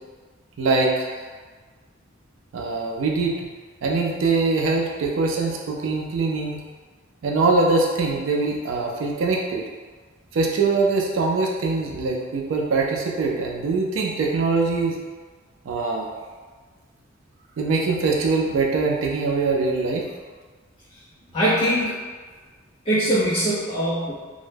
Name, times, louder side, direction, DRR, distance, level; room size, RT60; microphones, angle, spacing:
voice 1, 0.6-1.1 2.5-3.5 3.8-6.6 7.2-9.7 10.3-15.0 15.7-16.1 17.6-20.0, right 3 dB, 85° right, -1 dB, 0.4 m, -23 dB
voice 2, 21.3-22.0 22.9-24.1, right 1 dB, 30° left, -11 dB, 0.5 m, -21 dB
2.1 x 2.0 x 3.2 m, 1.4 s
head